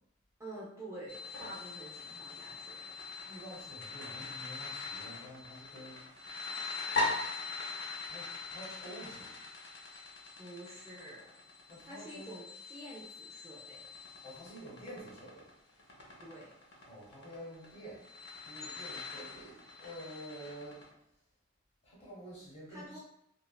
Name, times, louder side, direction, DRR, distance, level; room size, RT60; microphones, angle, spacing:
voice 1, 0.4-2.9 10.4-11.3 11.8-13.8 16.2-16.5 22.7-23.0, right 1 dB, 15° right, -6 dB, 0.4 m, -48 dB
sound 1, 1.1-20.8, left 3 dB, 60° left, 0.7 m, -41 dB
voice 2, 3.2-6.0 8.0-9.4 11.7-12.3 14.2-15.5 16.8-18.0 18.4-20.8 21.8-23.0, right 1 dB, 35° left, -5 dB, 1.0 m, -49 dB
2.9 x 2.3 x 2.2 m, 0.76 s
head